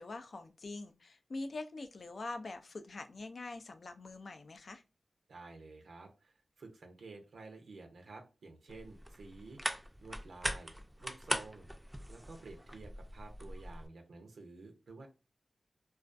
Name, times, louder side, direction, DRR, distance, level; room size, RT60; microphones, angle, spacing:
voice 1, 0.0-4.8, left 2 dB, 65° left, 8 dB, 0.3 m, -44 dB
voice 2, 5.3-11.7 12.1-15.1, right 3 dB, 90° right, 3 dB, 0.5 m, -52 dB
sound 1, 8.7-13.9, equal, 10° right, 0.4 m, -41 dB
2.3 x 2.2 x 2.5 m, 0.29 s
cardioid pair, 55°, 0 cm